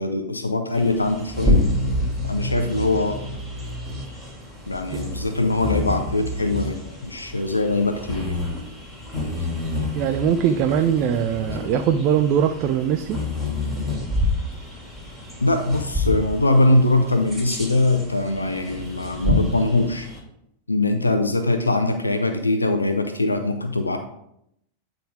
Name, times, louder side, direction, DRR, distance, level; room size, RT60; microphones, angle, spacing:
voice 1, 0.0-1.7 2.2-3.2 4.7-8.4 15.4-20.1 20.7-24.0, left 2 dB, 80° left, 6 dB, 0.5 m, -22 dB
Bird vocalization bird call bird song, 0.7-20.2, left 1 dB, 5° right, 3.0 m, -28 dB
voice 2, 9.9-13.2, right 9 dB, 40° right, 7 dB, 0.5 m, -21 dB
9.1 x 3.9 x 4.8 m, 0.77 s
figure-of-eight pair, 90°, 0 cm